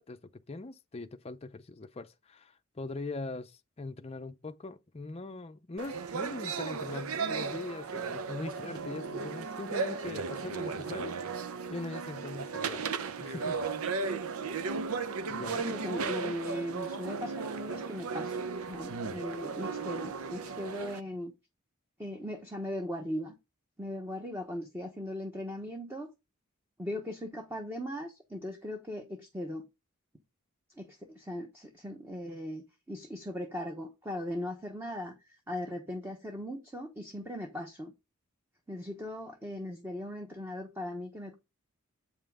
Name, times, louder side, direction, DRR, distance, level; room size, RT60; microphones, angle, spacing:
voice 1, 0.0-11.1 11.7-12.9 13.2-13.9 15.3-15.6, left 2 dB, 30° left, 0.5 m, -41 dB
sound 1, 5.8-21.0, right 5 dB, 80° right, 0.6 m, -35 dB
voice 2, 15.6-18.4 18.7-21.3 22.0-23.3 23.8-26.1 26.8-29.7 30.8-37.9 38.7-41.4, left 1 dB, 10° right, 1.0 m, -39 dB
8.0 x 5.5 x 3.6 m
head